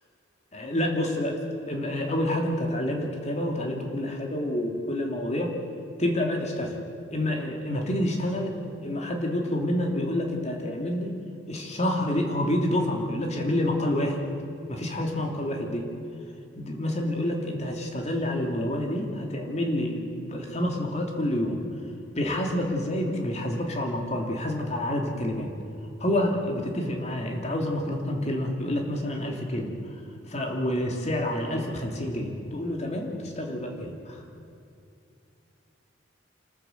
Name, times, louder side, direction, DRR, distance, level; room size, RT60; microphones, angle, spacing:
voice 1, 0.5-1.4 1.7-5.6 6.0-6.8 7.1-11.2 11.5-14.2 14.7-15.9 16.6-21.6 22.1-25.5 26.0-29.7 30.3-34.2, left 1 dB, 35° left, 2 dB, 2.9 m, -28 dB
26.5 x 14.0 x 8.1 m, 2.6 s
head